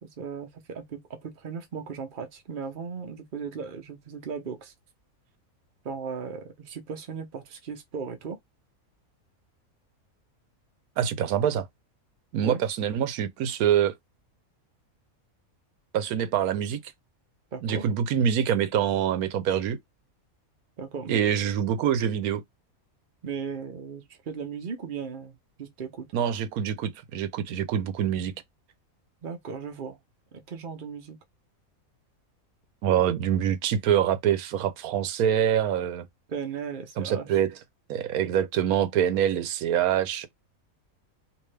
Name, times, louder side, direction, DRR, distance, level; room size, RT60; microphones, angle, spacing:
voice 1, 0.0-4.7 5.8-8.4 12.4-12.6 17.5-17.9 20.8-21.2 23.2-26.1 29.2-30.0 30.3-31.2 36.3-37.4, right 6 dB, 40° right, 0.9 m, -37 dB
voice 2, 11.0-11.7 12.3-13.9 15.9-16.8 17.6-19.8 21.1-22.4 26.1-28.3 32.8-36.0 37.0-37.5 37.9-40.3, right 9 dB, 85° right, 1.1 m, -25 dB
3.2 x 2.9 x 3.2 m
omnidirectional pair, 1.5 m